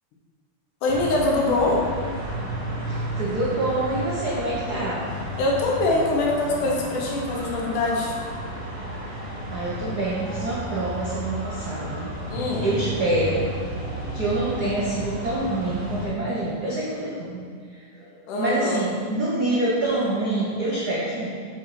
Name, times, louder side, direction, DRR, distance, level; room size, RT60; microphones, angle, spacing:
voice 1, 0.8-1.8 5.4-8.1 12.3-12.7 18.3-18.9, left 2 dB, 80° left, -2 dB, 2.8 m, -23 dB
sound 1, 0.9-16.1, right 1 dB, 10° right, 1.3 m, -32 dB
voice 2, 2.9-5.1 9.5-12.1 12.6-13.4 14.1-17.4 17.9-18.0 18.4-21.3, right 2 dB, 75° right, -6 dB, 0.9 m, -26 dB
7.1 x 6.0 x 4.9 m, 2.1 s
omnidirectional pair, 3.5 m